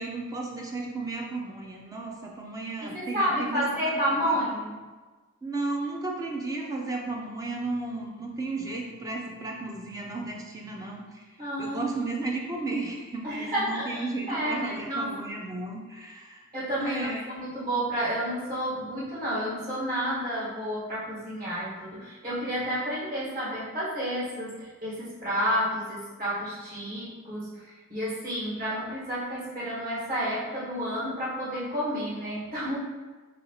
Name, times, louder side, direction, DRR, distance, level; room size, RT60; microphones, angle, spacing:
voice 1, 0.0-3.8 4.2-4.4 5.4-11.3 11.6-16.5 16.8-17.2, right 3 dB, 15° right, -1 dB, 0.4 m, -34 dB
voice 2, 2.8-4.8 11.4-11.8 13.2-15.1 16.5-32.8, equal, 40° right, -8 dB, 1.3 m, -30 dB
3.7 x 2.8 x 2.7 m, 1.3 s
head